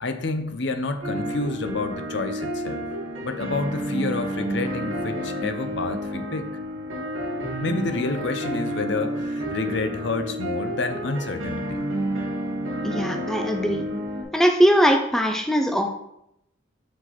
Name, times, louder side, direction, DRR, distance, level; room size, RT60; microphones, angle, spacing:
voice 1, 0.0-2.8 3.2-6.5 7.6-11.8 12.7-12.8, left 3 dB, 60° left, 8 dB, 0.6 m, -29 dB
sound 1, 1.0-14.2, equal, 85° right, 1.8 m, -30 dB
voice 2, 12.8-13.8 14.3-15.9, equal, ahead, 4 dB, 0.3 m, -20 dB
5.9 x 4.9 x 4.1 m, 0.80 s
head